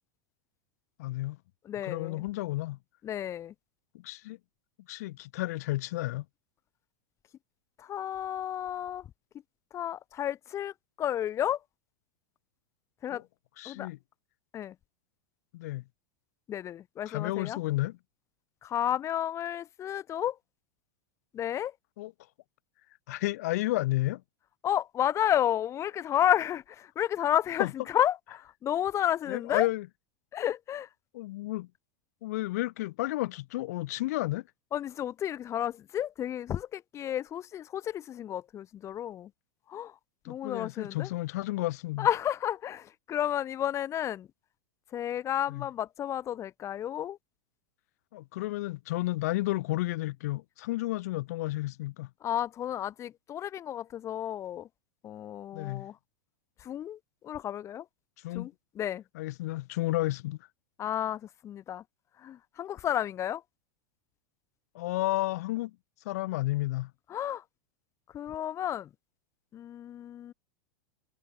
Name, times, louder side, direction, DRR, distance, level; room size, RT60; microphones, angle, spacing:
voice 1, 1.0-1.4 1.8-2.8 3.9-4.4 4.9-6.2 13.1-13.2 13.6-14.0 15.5-15.8 17.1-17.9 22.0-22.1 23.1-24.2 27.6-27.7 29.3-29.8 31.1-31.7 32.2-34.4 40.2-42.1 45.5-45.6 48.1-52.1 55.5-55.9 58.2-58.5 59.1-60.4 64.7-65.7 66.0-66.9, left 18 dB, 70° left, 6.7 m, -32 dB
voice 2, 1.6-2.2 3.0-3.5 7.8-9.1 9.7-11.6 13.0-13.2 13.6-13.9 14.5-14.7 16.5-17.6 18.6-20.4 21.3-21.7 24.6-29.7 30.3-30.9 34.7-39.3 39.7-40.0 40.3-41.1 42.0-44.3 44.9-47.2 52.2-54.7 55.0-56.0 56.6-57.9 58.3-59.0 60.8-61.8 62.2-63.4 67.1-67.4 68.1-68.9 69.5-70.3, left 11 dB, 30° left, 2.7 m, -32 dB
hypercardioid pair, 115°, 9 cm